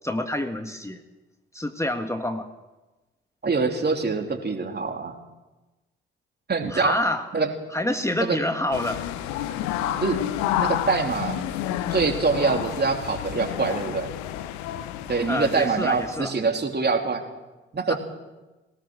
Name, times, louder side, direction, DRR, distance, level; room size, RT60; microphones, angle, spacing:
voice 1, 0.0-1.0 1.5-2.5 6.7-7.3 7.7-9.0 15.3-16.3 17.9-18.0, left 1 dB, 10° left, 6 dB, 1.8 m, -27 dB
voice 2, 3.4-5.2 6.5-6.9 7.3-7.5 8.2-8.4 10.0-10.2 10.6-11.4 11.9-14.1 15.1-17.2 17.7-18.0, right 4 dB, 35° right, 4 dB, 3.5 m, -24 dB
sound 1, 8.7-16.2, left 11 dB, 70° left, 1.2 m, -30 dB
21.5 x 19.0 x 6.5 m, 1.1 s
figure-of-eight pair, 40°, 29 cm